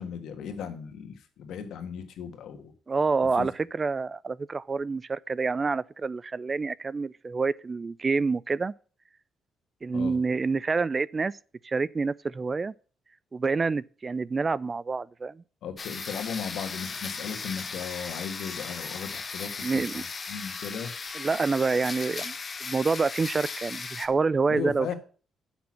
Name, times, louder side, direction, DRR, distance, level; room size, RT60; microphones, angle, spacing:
voice 1, 0.0-2.7 3.4-3.5 9.9-10.2 15.6-20.9 24.5-24.9, left 7 dB, 75° left, 1.5 m, -36 dB
voice 2, 2.9-8.7 9.8-11.3 11.6-12.7 13.3-15.4 19.6-20.0 21.1-22.3 22.6-24.9, right 4 dB, 30° right, 0.3 m, -27 dB
sound 1, 15.8-24.1, left 4 dB, 35° left, 1.1 m, -37 dB
7.0 x 6.0 x 7.3 m
cardioid pair, 90°, 0 cm